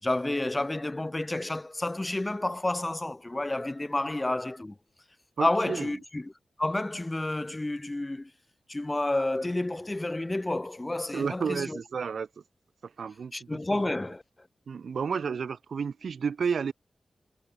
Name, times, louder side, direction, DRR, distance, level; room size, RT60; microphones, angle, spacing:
voice 1, 0.0-4.7 5.4-6.3 6.6-8.3 8.7-11.8 13.3-14.2, left 2 dB, 15° left, 5.0 m, -30 dB
voice 2, 5.4-5.9 11.1-12.3 12.8-13.8 14.7-16.7, right 6 dB, 75° right, 4.3 m, -32 dB
wide cardioid pair, 170°, 0 cm